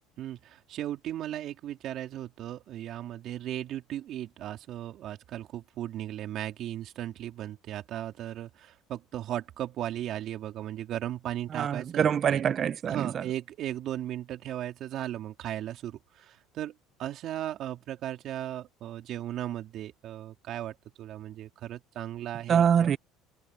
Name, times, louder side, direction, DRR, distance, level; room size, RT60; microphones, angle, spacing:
voice 1, 0.2-12.4 12.9-16.7 17.0-22.9, right 12 dB, 50° right, 3.4 m, -36 dB
voice 2, 11.5-13.2 22.5-23.0, right 8 dB, 35° right, 0.5 m, -25 dB
cardioid pair, 125°, 0 cm